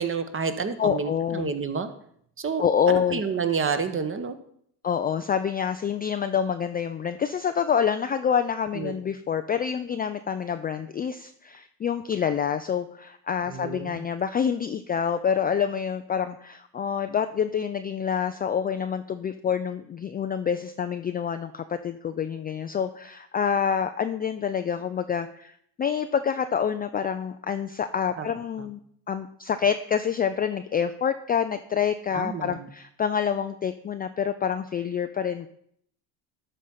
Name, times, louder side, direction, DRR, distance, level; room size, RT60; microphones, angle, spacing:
voice 1, 0.0-1.9 2.4-4.4 8.7-9.0 13.5-14.0 28.2-28.3 28.6-28.7 32.1-32.7, right 5 dB, 25° right, 9 dB, 1.1 m, -29 dB
voice 2, 0.8-1.5 2.6-3.2 4.8-28.8 29.1-35.5, left 7 dB, 20° left, 8 dB, 0.4 m, -27 dB
12.5 x 4.3 x 5.6 m, 0.67 s
hypercardioid pair, 65°, 49 cm